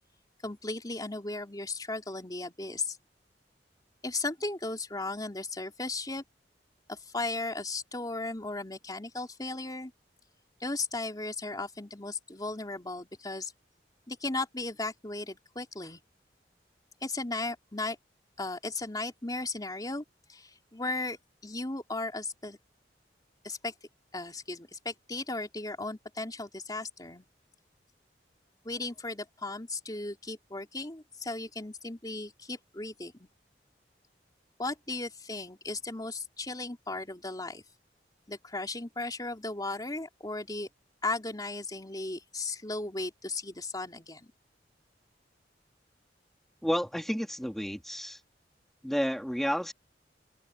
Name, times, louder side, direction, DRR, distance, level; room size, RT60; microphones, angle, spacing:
voice 1, 0.4-3.0 4.0-6.2 6.9-9.9 10.6-13.5 14.1-16.0 17.0-18.0 18.4-20.0 20.3-21.2 21.4-22.6 23.4-23.7 24.1-27.3 28.6-33.3 34.6-37.6 38.3-40.7 41.0-44.3, left 2 dB, 20° left, 3.5 m, -36 dB
voice 2, 46.6-48.2 48.8-49.7, equal, ahead, 3.0 m, -31 dB
open air
head